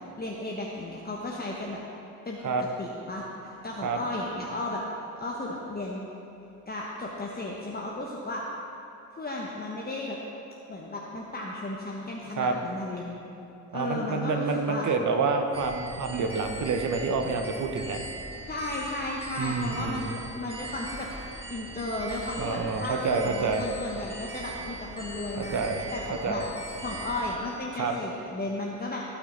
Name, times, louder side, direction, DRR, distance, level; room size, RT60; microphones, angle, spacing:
voice 1, 0.2-1.8 2.2-2.4 2.8-4.8 5.2-6.1 6.7-8.4 9.1-10.2 10.7-13.2 13.7-14.9 18.5-21.1 21.5-26.4 26.8-29.0, left 2 dB, 25° left, -2 dB, 1.3 m, -34 dB
voice 2, 13.7-18.0 19.4-20.0 22.4-23.6 25.4-25.9 26.2-26.4 27.7-27.9, right 4 dB, 50° right, 5 dB, 1.2 m, -28 dB
sound 1, 15.5-27.4, right 2 dB, 15° right, 2.4 m, -40 dB
16.0 x 5.8 x 4.0 m, 2.9 s
hypercardioid pair, 45°, 40 cm